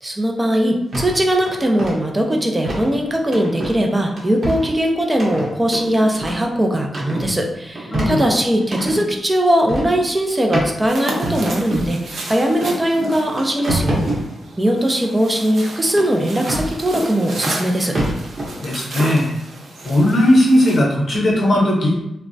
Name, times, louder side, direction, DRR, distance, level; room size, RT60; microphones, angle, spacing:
voice 1, 0.0-14.0 14.6-18.0, right 1 dB, 15° right, 2 dB, 0.4 m, -19 dB
sound 1, 0.9-1.1 1.5-1.9 2.6-2.9 3.3-3.8 4.2-4.7 5.2-6.5 6.8-7.4 7.7-9.0 9.7-10.0 10.5-10.7 11.2-11.9 12.6-12.7 13.1-14.2 16.0-16.7 17.6-17.7 17.9-18.5, right 1 dB, 40° right, 0.8 m, -25 dB
voice 2, 7.9-8.3 18.6-19.3 19.8-22.0, left 1 dB, 45° left, -3 dB, 0.8 m, -16 dB
sound 2, 10.9-20.8, right 1 dB, 65° right, 0.5 m, -32 dB
3.3 x 2.0 x 2.6 m, 0.90 s
wide cardioid pair, 135°, 0 cm